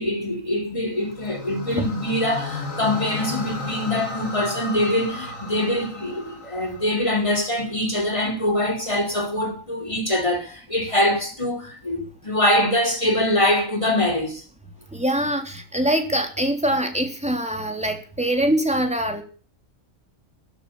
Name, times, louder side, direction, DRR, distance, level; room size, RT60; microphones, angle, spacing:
voice 1, 0.0-14.4, left 1 dB, 25° left, 4.7 m, -23 dB
sound 1, 1.0-7.3, left 3 dB, 85° left, 3.2 m, -34 dB
voice 2, 14.9-19.2, right 1 dB, 5° right, 3.5 m, -23 dB
14.5 x 9.2 x 8.7 m
omnidirectional pair, 1.3 m